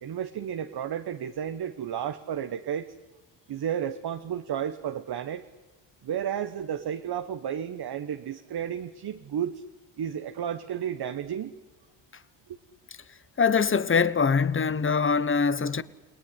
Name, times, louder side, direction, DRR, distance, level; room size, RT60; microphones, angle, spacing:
voice 1, 0.0-2.9 3.5-5.4 6.0-9.6 10.0-11.5, right 9 dB, 50° right, 1.3 m, -32 dB
voice 2, 13.4-15.8, left 5 dB, 25° left, 1.1 m, -23 dB
29.5 x 18.5 x 10.0 m
cardioid pair, 85°, 50 cm